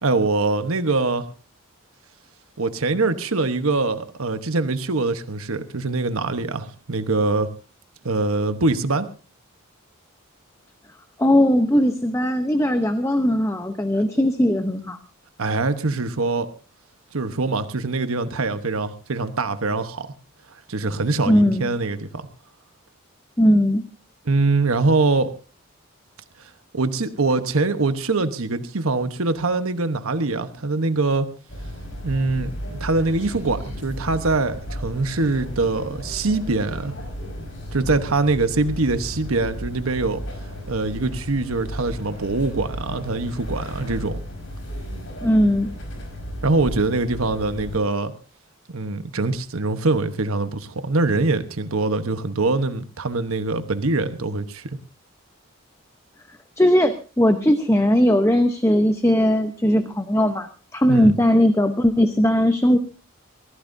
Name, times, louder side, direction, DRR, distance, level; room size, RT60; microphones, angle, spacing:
voice 1, 0.0-1.2 2.6-7.5 8.0-9.1 15.4-16.5 17.1-20.1 20.5-22.3 24.2-25.3 26.4-31.3 32.0-36.9 37.7-40.2 40.7-44.2 46.4-48.1 48.7-54.8 60.9-61.2, right 3 dB, 85° right, 10 dB, 1.1 m, -23 dB
voice 2, 11.2-15.0 21.3-21.7 23.4-23.8 45.2-45.7 56.6-62.8, equal, 15° left, 8 dB, 0.8 m, -18 dB
sound 1, 31.5-47.8, equal, 60° left, 5.3 m, -34 dB
23.5 x 16.0 x 2.7 m, 0.34 s
head